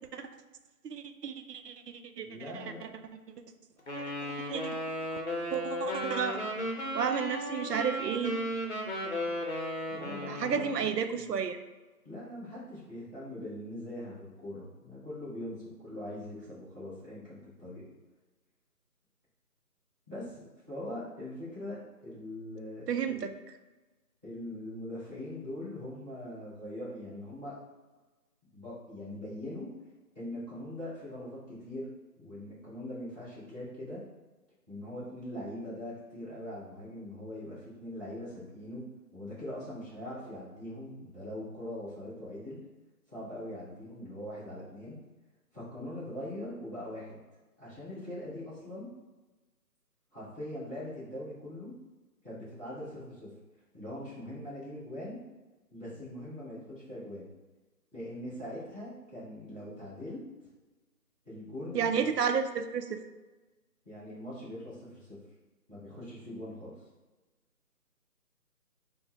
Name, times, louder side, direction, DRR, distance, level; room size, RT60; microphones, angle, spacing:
voice 1, 0.8-2.9 4.5-4.6 5.5-6.4 6.9-8.3 10.3-11.6 22.9-23.4 61.7-63.0, right 7 dB, 80° right, 8 dB, 0.6 m, -32 dB
voice 2, 2.2-2.8 9.9-11.3 12.0-17.8 20.1-23.2 24.2-27.6 28.5-29.7 30.1-31.9 32.2-34.0 34.7-38.8 39.1-42.6 43.1-45.0 45.5-47.2 47.6-48.9 50.1-51.7 52.2-53.3 53.7-55.2 55.7-57.3 57.9-60.2 61.2-62.1 63.8-65.2 65.7-66.7, left 1 dB, 15° right, -14 dB, 1.0 m, -42 dB
Wind instrument woodwind instrument, 3.9-10.8, equal, 45° left, 0.7 m, -35 dB
4.1 x 2.1 x 2.9 m, 1.2 s
figure-of-eight pair, 165°, 47 cm